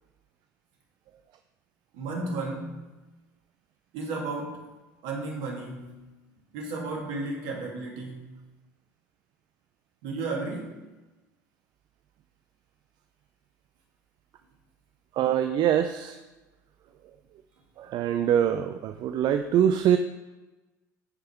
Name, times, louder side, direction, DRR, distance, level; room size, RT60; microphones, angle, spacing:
voice 1, 1.9-3.0 3.9-4.7 5.0-6.0 6.5-8.4 10.0-10.9, right 3 dB, 60° right, -2 dB, 2.8 m, -34 dB
voice 2, 15.1-16.2 17.8-20.0, right 9 dB, 45° right, 8 dB, 0.5 m, -24 dB
13.5 x 5.5 x 3.5 m, 1.1 s
hypercardioid pair, 80°, 10 cm